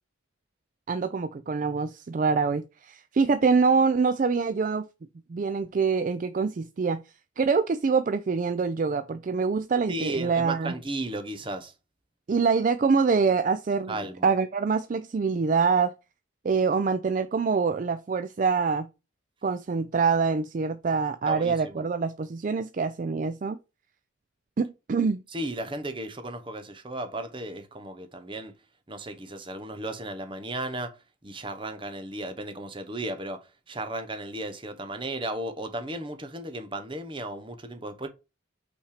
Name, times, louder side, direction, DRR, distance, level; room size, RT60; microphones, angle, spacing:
voice 1, 0.9-4.9 5.3-7.0 7.4-10.7 12.3-14.0 14.2-15.9 16.4-18.9 19.4-23.6 24.6-25.2, right 5 dB, 40° right, 0.3 m, -25 dB
voice 2, 9.9-11.7 13.9-14.3 21.3-21.9 25.3-28.5 28.9-31.0 31.2-38.1, right 1 dB, 25° right, 0.9 m, -35 dB
5.7 x 4.3 x 5.0 m
head